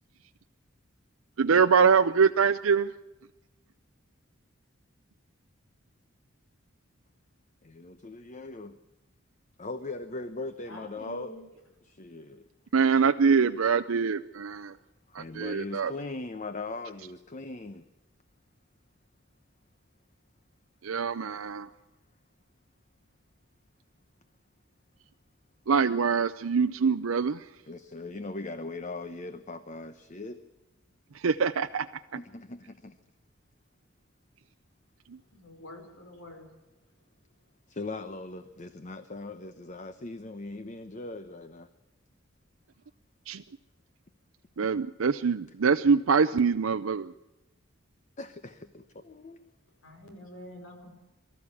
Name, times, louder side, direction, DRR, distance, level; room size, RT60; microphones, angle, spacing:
voice 1, 1.4-2.9 12.7-14.7 15.1-15.9 20.8-21.7 25.7-27.4 31.2-31.9 43.3-43.4 44.6-47.1, right 5 dB, 90° right, 8 dB, 0.6 m, -24 dB
voice 2, 7.6-8.8 9.6-11.3 11.8-12.5 15.1-17.9 27.7-30.4 32.2-33.0 37.7-41.7 48.2-49.4, left 3 dB, 35° left, 10 dB, 0.9 m, -40 dB
voice 3, 10.7-11.4 35.3-36.5 49.8-50.9, left 1 dB, 80° left, 4 dB, 4.9 m, -46 dB
23.5 x 13.5 x 8.5 m, 1.0 s
head